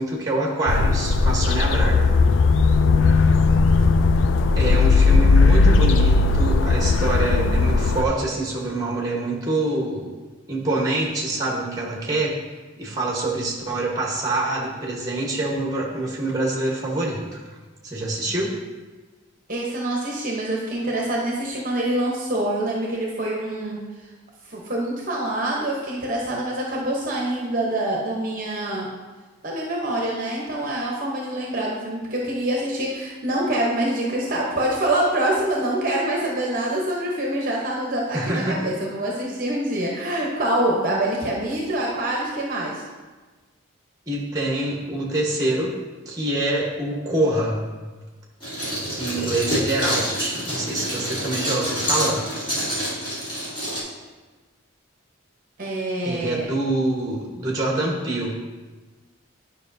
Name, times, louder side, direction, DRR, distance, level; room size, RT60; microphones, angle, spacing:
voice 1, 0.0-2.1 4.6-10.1 10.5-12.4 12.8-17.4 17.8-18.5 38.1-38.7 44.1-45.7 46.0-47.6 48.9-52.2 56.0-58.3, right 2 dB, 20° right, -2 dB, 1.2 m, -25 dB
sound 1, 0.7-8.0, left 4 dB, 70° left, 0.3 m, -17 dB
voice 2, 19.5-23.8 24.5-28.9 29.4-42.8 55.6-56.5, right 1 dB, 40° right, -2 dB, 0.9 m, -25 dB
sound 2, 48.4-53.8, equal, 25° left, 2.0 m, -27 dB
9.8 x 5.5 x 2.7 m, 1.3 s
head